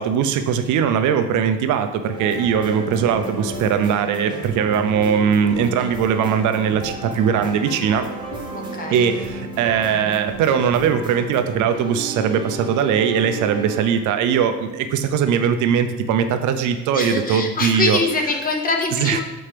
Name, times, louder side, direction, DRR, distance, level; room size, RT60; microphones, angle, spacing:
voice 1, 0.0-8.1 8.9-18.0 19.0-19.2, right 7 dB, 60° right, 8 dB, 0.5 m, -20 dB
sound 1, 2.1-13.8, right 2 dB, 15° right, 0.7 m, -34 dB
sound 2, 2.4-11.9, left 1 dB, 70° left, 1.2 m, -37 dB
voice 2, 8.5-9.1 16.9-19.2, left 3 dB, 25° left, 2 dB, 0.7 m, -23 dB
7.5 x 4.3 x 3.3 m, 1.0 s
cardioid pair, 165°, 36 cm